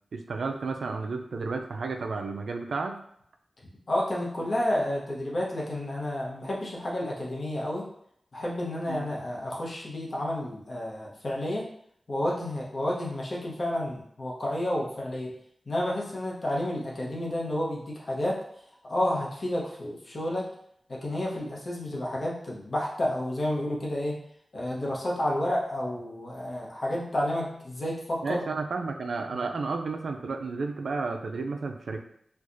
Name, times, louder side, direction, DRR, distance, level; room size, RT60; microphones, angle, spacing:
voice 1, 0.1-3.0 8.9-9.1 28.2-32.0, right 4 dB, 85° right, 4 dB, 0.4 m, -32 dB
voice 2, 3.9-7.9 8.3-11.6 12.1-15.3 15.7-18.4 18.8-20.5 20.9-24.2 24.5-28.4 29.3-29.4, left 1 dB, 50° left, -4 dB, 0.9 m, -30 dB
4.4 x 2.4 x 2.5 m, 0.69 s
wide cardioid pair, 90°, 0 cm